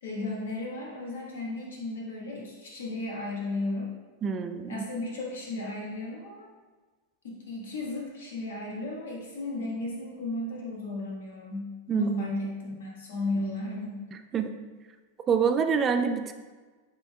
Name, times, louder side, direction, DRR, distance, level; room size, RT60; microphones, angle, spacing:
voice 1, 0.0-3.9 4.7-6.4 7.2-14.0, left 2 dB, 75° left, -4 dB, 1.4 m, -34 dB
voice 2, 4.2-4.8 11.9-12.3 14.3-14.5 15.3-16.3, right 6 dB, 30° right, 8 dB, 0.3 m, -26 dB
7.3 x 2.8 x 2.3 m, 1.3 s
hypercardioid pair, 95°, 0 cm